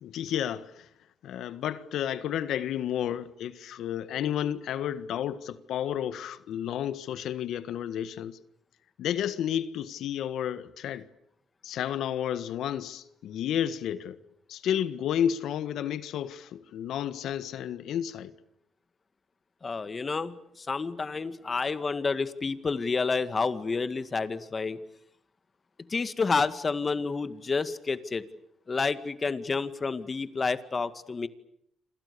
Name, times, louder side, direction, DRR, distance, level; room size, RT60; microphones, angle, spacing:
voice 1, 0.0-0.9 1.2-8.4 9.0-11.1 11.6-14.2 14.5-18.3, left 10 dB, 75° left, 1.6 m, -31 dB
voice 2, 19.6-24.8 25.9-28.2 28.7-31.3, left 4 dB, 35° left, 2.0 m, -29 dB
28.0 x 27.0 x 7.0 m
cardioid pair, 90°, 0 cm